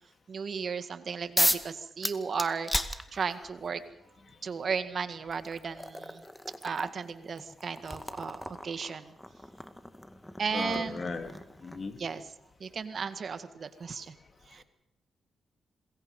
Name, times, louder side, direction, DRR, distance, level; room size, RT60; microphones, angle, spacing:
voice 1, 0.3-3.8 4.4-6.2 6.6-9.2 10.4-11.1 12.0-12.2 12.6-14.1 14.5-14.6, right 5 dB, 55° right, 11 dB, 1.9 m, -35 dB
sound 1, 1.4-1.7 2.0-3.6 4.7-4.8 5.3-12.0, left 1 dB, 5° left, 2.0 m, -34 dB
voice 2, 10.5-11.3 11.6-11.9, left 4 dB, 50° left, 7 dB, 3.4 m, -36 dB
27.0 x 21.5 x 5.5 m, 0.84 s
supercardioid pair, 55°, 0 cm